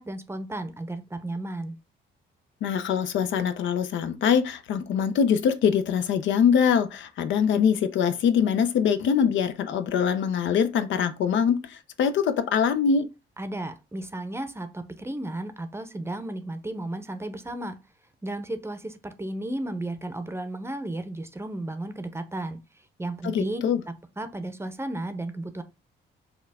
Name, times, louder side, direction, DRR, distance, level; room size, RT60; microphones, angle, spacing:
voice 1, 0.0-1.8 13.4-17.8 18.2-22.6 23.0-25.6, right 1 dB, 15° right, 0.6 m, -34 dB
voice 2, 2.6-13.1 23.2-23.8, left 7 dB, 70° left, 0.5 m, -23 dB
5.4 x 2.3 x 3.5 m
cardioid pair, 90°, 20 cm